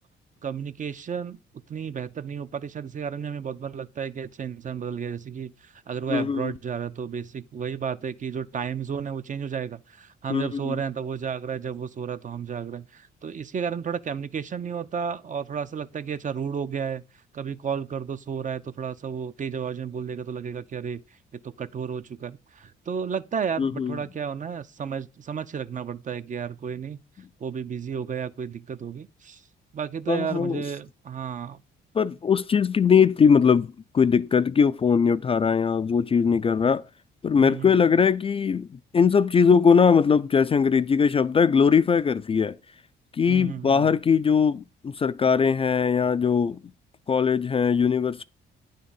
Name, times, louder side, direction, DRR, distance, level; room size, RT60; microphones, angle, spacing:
voice 1, 0.4-1.4 1.7-17.0 17.3-21.0 21.6-27.0 27.4-29.4 29.7-31.6 37.4-37.7 43.3-43.9, right 7 dB, 40° right, 0.6 m, -32 dB
voice 2, 6.1-6.5 10.3-10.8 23.6-24.0 30.1-30.6 32.0-36.8 37.2-38.7 38.9-42.6 43.2-46.6 47.1-48.2, left 6 dB, 30° left, 0.3 m, -21 dB
9.5 x 3.7 x 7.1 m
cardioid pair, 90°, 20 cm